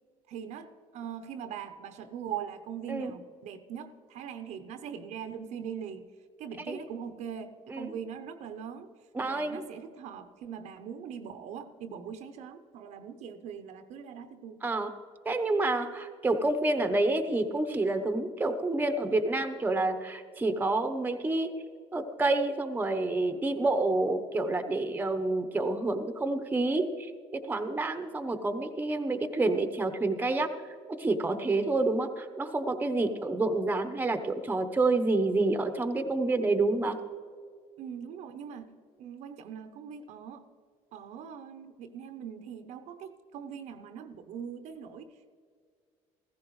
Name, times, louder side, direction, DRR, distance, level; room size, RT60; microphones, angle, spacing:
voice 1, 0.3-6.1 6.4-8.9 9.2-14.6 37.8-38.7 39.0-40.4 40.9-45.3, right 8 dB, 70° right, 8 dB, 0.8 m, -41 dB
voice 2, 9.1-9.6 14.6-14.9 15.2-21.5 21.9-30.5 31.0-37.0, right 2 dB, 15° right, 8 dB, 0.9 m, -28 dB
15.0 x 15.0 x 3.2 m, 2.1 s
cardioid pair, 95°, 12 cm